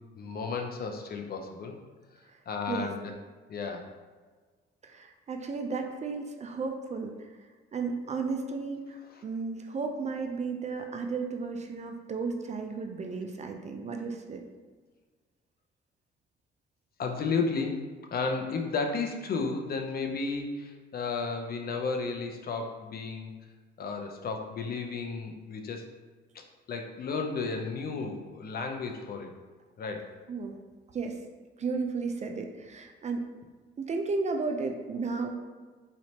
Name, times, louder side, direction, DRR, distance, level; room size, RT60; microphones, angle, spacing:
voice 1, 0.1-1.8 2.5-3.1 3.5-3.9 9.1-9.2 17.0-17.8 18.1-23.3 23.8-25.8 26.3-26.4 26.7-29.3 29.8-30.1, left 4 dB, 50° left, 3 dB, 0.6 m, -33 dB
voice 2, 4.8-7.3 7.7-14.4 30.3-30.6 30.9-31.2 31.6-33.2 33.8-35.3, right 4 dB, 35° right, 4 dB, 0.5 m, -34 dB
4.1 x 3.2 x 2.8 m, 1.4 s
cardioid pair, 90°, 20 cm